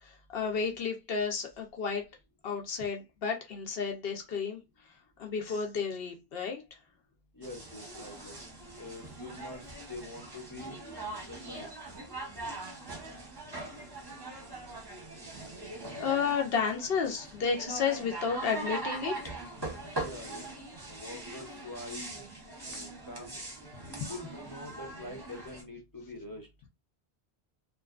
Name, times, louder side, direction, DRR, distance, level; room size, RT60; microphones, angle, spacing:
voice 1, 0.0-2.0 2.4-4.6 5.2-6.6 16.0-19.3, left 6 dB, 70° left, 0.8 m, -32 dB
voice 2, 7.3-8.4 8.8-10.8 11.2-11.9 20.0-20.5 20.9-22.3 22.7-23.4 23.9-26.5, left 2 dB, 25° left, 0.6 m, -45 dB
sound 1, 7.4-25.6, right 2 dB, 25° right, 0.7 m, -41 dB
2.5 x 2.3 x 2.3 m
omnidirectional pair, 1.0 m